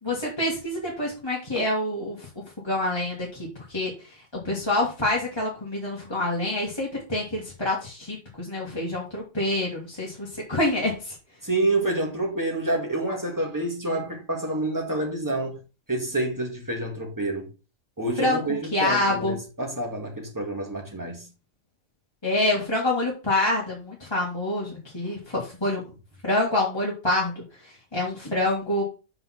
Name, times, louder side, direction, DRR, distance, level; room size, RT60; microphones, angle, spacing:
voice 1, 0.0-2.3 2.6-3.9 4.4-11.2 18.2-19.4 22.2-25.8 26.2-27.4 27.9-28.8, left 1 dB, 20° left, 2.0 m, -26 dB
voice 2, 11.4-15.6 15.9-17.5 18.0-21.3, right 2 dB, 15° right, 2.0 m, -28 dB
5.8 x 5.5 x 5.9 m
omnidirectional pair, 1.4 m